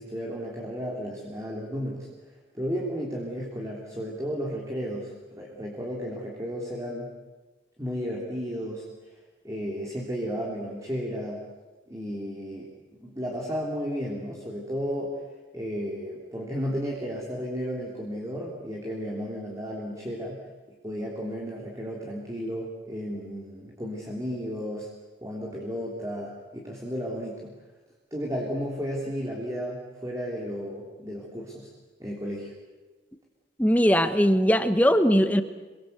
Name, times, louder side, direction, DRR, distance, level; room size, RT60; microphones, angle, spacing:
voice 1, 0.0-2.1 2.5-7.1 7.8-8.8 9.4-11.4 11.9-12.7 13.0-15.2 15.5-20.4 20.8-24.9 25.2-27.5 28.1-31.7 32.0-32.5, equal, 15° right, -2 dB, 3.5 m, -33 dB
voice 2, 33.6-35.4, equal, 10° left, 10 dB, 1.1 m, -20 dB
28.0 x 23.0 x 8.1 m, 1.2 s
head